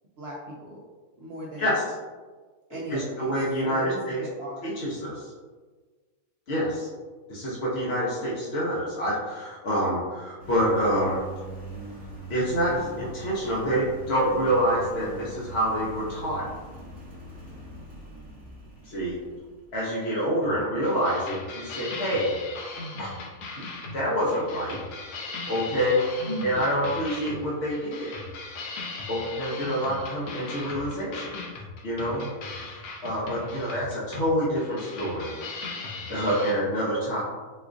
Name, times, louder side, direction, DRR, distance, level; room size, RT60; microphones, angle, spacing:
voice 1, 0.2-0.8 1.2-1.8 2.7-3.3 3.7-4.7 26.2-26.7, equal, 75° right, -5 dB, 0.5 m, -36 dB
voice 2, 2.9-4.2 4.6-5.3 6.5-6.9 7.3-11.2 12.3-16.4 18.8-19.2 19.7-22.3 23.0-23.1 23.9-24.8 25.5-28.2 29.1-32.3 33.0-35.3 35.6-37.2, equal, 55° left, -7 dB, 0.7 m, -27 dB
Engine, 10.4-19.8, right 2 dB, 5° right, 0.8 m, -42 dB
sound 1, 20.4-36.5, left 3 dB, 75° left, 1.1 m, -39 dB
4.2 x 2.4 x 2.4 m, 1.4 s
omnidirectional pair, 1.6 m